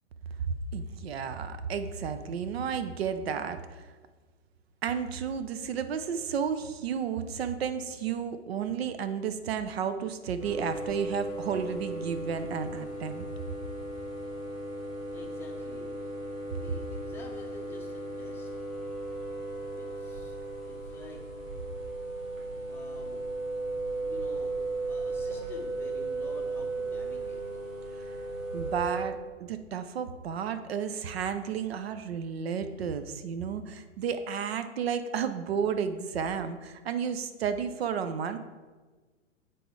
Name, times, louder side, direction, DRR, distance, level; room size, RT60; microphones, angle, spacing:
voice 1, 0.4-3.9 4.8-13.3 16.7-16.8 28.5-38.4, right 7 dB, 50° right, 10 dB, 0.6 m, -32 dB
sound 1, 10.4-29.0, right 2 dB, 75° right, 2.4 m, -36 dB
voice 2, 15.1-16.0 16.4-18.5 19.7-20.4 20.7-21.2 22.7-23.2 24.0-24.5 24.9-27.4, left 2 dB, 5° left, 0 dB, 0.6 m, -48 dB
7.7 x 4.1 x 4.8 m, 1.3 s
figure-of-eight pair, 110°, 39 cm